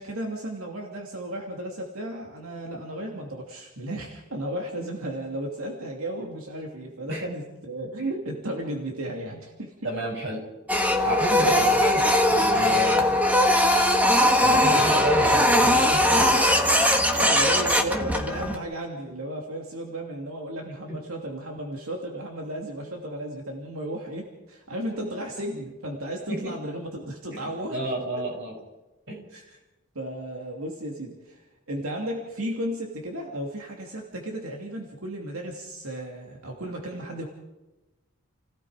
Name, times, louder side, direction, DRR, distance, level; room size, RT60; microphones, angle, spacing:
voice 1, 0.0-9.9 11.4-11.8 17.2-27.8 29.3-29.6 29.9-31.4 31.7-37.2, right 1 dB, 90° right, 1 dB, 2.9 m, -34 dB
voice 2, 9.8-10.4 11.0-11.6 11.8-12.0 12.3-13.2 14.4-16.4 20.9-21.0 26.3-26.5 27.3-28.5 29.1-29.2, right 1 dB, 55° right, -1 dB, 7.1 m, -30 dB
Printer, 10.7-18.5, left 1 dB, 5° right, 1.5 m, -20 dB
30.0 x 17.0 x 5.2 m, 1.1 s
head